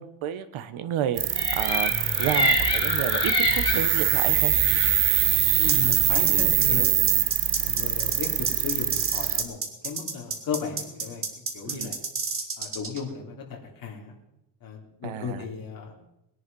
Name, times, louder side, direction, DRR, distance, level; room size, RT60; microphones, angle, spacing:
voice 1, 0.0-4.5 11.6-11.9 15.0-15.4, right 10 dB, 85° right, 10 dB, 1.3 m, -31 dB
sound 1, 1.2-9.4, right 13 dB, 65° right, 1.0 m, -24 dB
sound 2, 1.4-6.8, left 1 dB, 10° left, 6.1 m, -28 dB
voice 2, 5.6-7.2 7.6-11.2 11.5-11.9 12.6-14.2 14.6-15.9, left 6 dB, 45° left, -1 dB, 3.2 m, -35 dB
sound 3, 5.7-13.0, right 4 dB, 25° right, 1.8 m, -30 dB
20.5 x 10.5 x 5.4 m, 0.88 s
cardioid pair, 170°, 47 cm